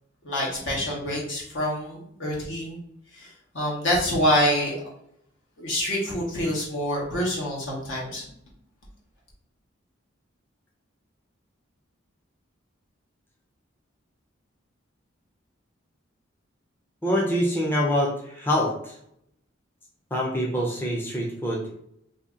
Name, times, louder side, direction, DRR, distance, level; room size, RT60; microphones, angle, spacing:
voice 1, 0.2-2.8 3.1-4.8 5.6-8.3, equal, 70° left, -4 dB, 1.3 m, -26 dB
voice 2, 17.0-19.0 20.1-21.7, equal, 10° left, -3 dB, 0.5 m, -25 dB
2.8 x 2.7 x 3.6 m, 0.72 s
head